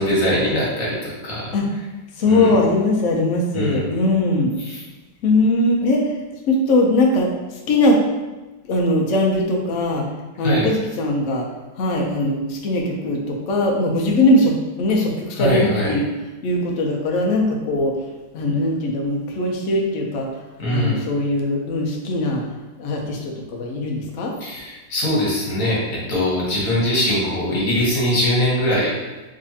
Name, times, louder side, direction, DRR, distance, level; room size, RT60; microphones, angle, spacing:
voice 1, 0.0-1.5 2.3-2.5 3.5-3.8 4.7-4.8 10.4-10.7 15.4-15.9 20.6-21.0 24.4-28.9, left 1 dB, 50° left, -5 dB, 1.3 m, -21 dB
voice 2, 2.1-4.5 5.2-6.2 6.5-8.0 8.6-10.0 10.4-11.4 11.7-16.1 16.4-18.0 18.3-20.3 20.7-22.4 22.8-24.3, left 1 dB, 80° left, -1 dB, 0.6 m, -20 dB
3.7 x 3.2 x 2.7 m, 1.1 s
omnidirectional pair, 2.1 m